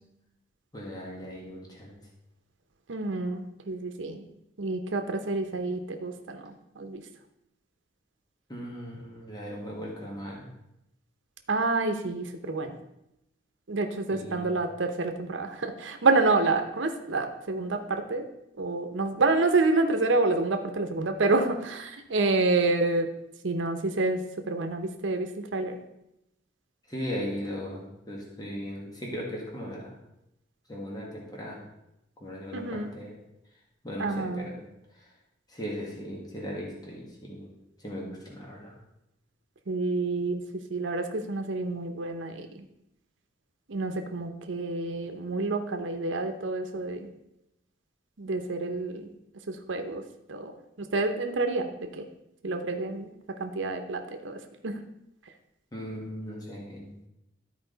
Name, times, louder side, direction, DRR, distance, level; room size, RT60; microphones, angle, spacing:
voice 1, 0.7-2.0 8.5-10.5 14.1-14.6 26.9-30.0 30.7-31.6 32.2-33.2 33.8-34.6 34.9-35.1 35.5-37.5 37.8-38.8 55.7-57.1, equal, 20° left, -3 dB, 1.7 m, -38 dB
voice 2, 2.9-4.3 4.6-7.0 11.5-12.8 13.7-18.2 18.6-23.1 23.4-24.2 24.5-25.8 32.5-32.9 34.0-34.5 39.7-40.4 40.7-42.7 43.7-47.1 48.2-49.1 49.5-50.0 50.3-52.0 52.4-54.8, right 3 dB, 85° right, 6 dB, 0.8 m, -28 dB
12.5 x 4.8 x 3.9 m, 0.85 s
head